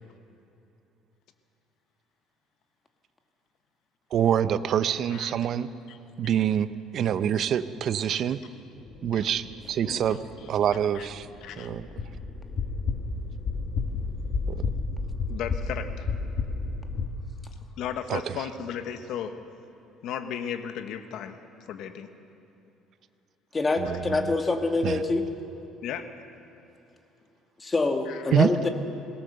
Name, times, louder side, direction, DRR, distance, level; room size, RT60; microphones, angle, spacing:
voice 1, 4.1-5.7 6.2-8.4 9.0-10.2 10.5-11.3 11.6-11.9 14.5-14.7 18.1-18.3 23.8-24.3 24.8-25.0 28.3-28.5, right 9 dB, 50° right, 13 dB, 0.7 m, -26 dB
sound 1, 8.8-17.1, left 4 dB, 45° left, 1.6 m, -32 dB
voice 2, 9.8-10.2 10.9-11.1 11.4-11.7 15.3-16.1 17.8-19.4 20.0-21.4 21.7-22.1 25.8-26.2 28.1-28.3, left 8 dB, 65° left, 8 dB, 1.2 m, -35 dB
voice 3, 23.5-25.2 27.6-28.7, left 3 dB, 20° left, 5 dB, 1.6 m, -25 dB
22.0 x 17.5 x 6.8 m, 2.8 s
cardioid pair, 135°, 0 cm